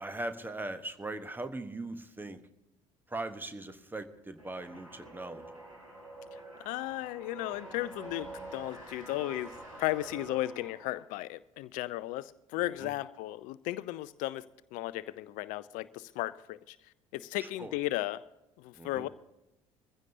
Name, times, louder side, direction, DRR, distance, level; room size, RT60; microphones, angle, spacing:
voice 1, 0.0-2.4 3.1-5.4 12.8-12.9 17.4-17.7 18.8-19.1, right 2 dB, 10° right, 1.1 m, -40 dB
sound 1, 4.4-11.1, right 2 dB, 90° right, 3.6 m, -47 dB
voice 2, 6.3-18.2 18.6-19.1, left 16 dB, 50° left, 0.5 m, -35 dB
21.5 x 15.5 x 2.8 m
figure-of-eight pair, 55°, 17 cm